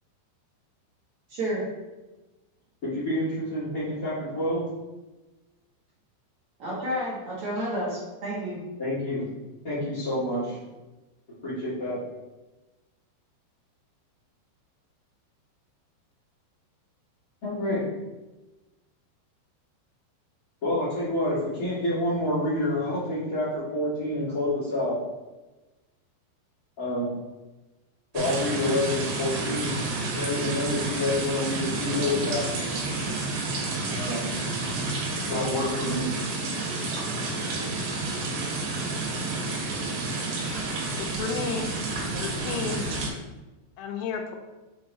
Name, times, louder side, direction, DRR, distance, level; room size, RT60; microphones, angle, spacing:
voice 1, 1.3-1.6 6.6-8.6, equal, 55° right, -8 dB, 2.2 m, -30 dB
voice 2, 2.8-4.6 8.8-9.2 9.6-10.6 11.4-12.0 17.4-17.8 20.6-25.0 26.8-27.1 28.1-29.7 30.1-32.7 33.9-34.2 35.3-36.1, left 1 dB, 65° left, -12 dB, 0.8 m, -28 dB
sound 1, 28.1-43.1, right 3 dB, 70° right, 3.4 m, -30 dB
voice 3, 40.9-41.7 42.1-42.8 43.8-44.4, left 5 dB, 90° left, 4 dB, 3.2 m, -32 dB
7.3 x 3.6 x 4.2 m, 1.1 s
omnidirectional pair, 5.4 m